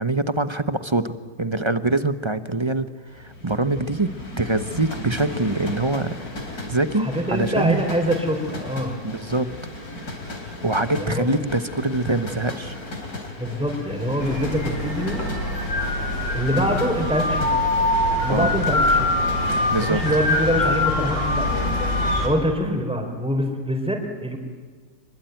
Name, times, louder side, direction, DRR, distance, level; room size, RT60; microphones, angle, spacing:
voice 1, 0.0-2.9 3.2-4.1 4.4-6.1 6.7-7.8 9.0-9.5 10.6-12.8 18.3-18.5 19.7-20.0 22.6-22.8, right 2 dB, 20° right, 11 dB, 0.9 m, -24 dB
sound 1, 3.1-20.5, left 2 dB, 70° left, 4.6 m, -36 dB
voice 2, 7.0-9.0 11.0-11.3 13.4-15.2 16.3-17.6 18.2-19.2 19.8-21.5 22.2-24.4, equal, 5° right, 3 dB, 3.9 m, -24 dB
sound 2, 14.2-22.3, left 2 dB, 50° left, 5.7 m, -23 dB
26.0 x 23.0 x 9.2 m, 1.5 s
omnidirectional pair, 1.6 m